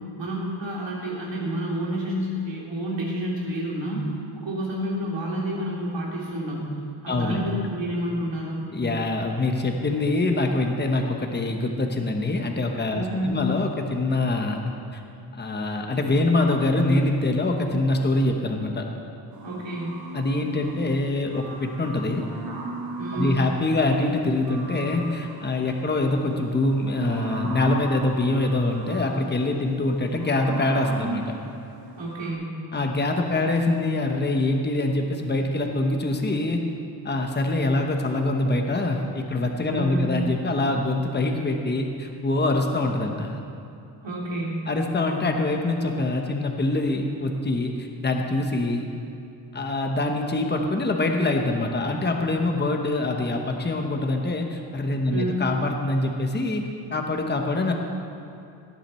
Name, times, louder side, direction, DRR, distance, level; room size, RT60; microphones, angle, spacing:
voice 1, 0.2-8.6 12.9-13.4 19.4-20.1 23.0-23.4 32.0-32.6 39.7-40.2 44.0-44.7 55.1-55.4, right 1 dB, 85° right, -4 dB, 3.1 m, -29 dB
voice 2, 7.1-7.5 8.7-15.0 15.4-18.8 20.1-22.2 23.1-31.3 32.7-36.6 37.0-43.4 44.7-48.9 49.5-56.6 56.9-57.7, left 2 dB, 25° left, 3 dB, 1.0 m, -24 dB
sound 1, 19.3-20.9 21.2-23.7 24.2-32.3, right 2 dB, 55° right, 1.8 m, -37 dB
18.0 x 10.0 x 4.3 m, 2.6 s
wide cardioid pair, 170°, 43 cm